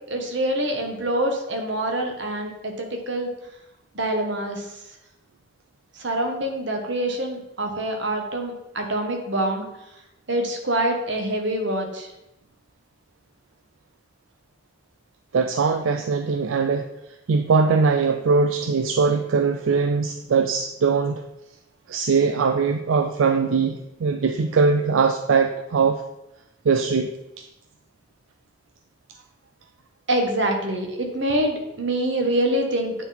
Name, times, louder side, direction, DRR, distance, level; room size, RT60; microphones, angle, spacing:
voice 1, 0.1-3.3 3.9-4.7 5.9-9.7 10.3-12.1 30.1-32.9, right 1 dB, 65° right, 3 dB, 1.3 m, -25 dB
voice 2, 15.3-16.8 17.3-21.2 21.9-26.0 26.6-27.1, right 5 dB, 85° right, 7 dB, 0.4 m, -21 dB
9.0 x 4.0 x 4.1 m, 0.90 s
head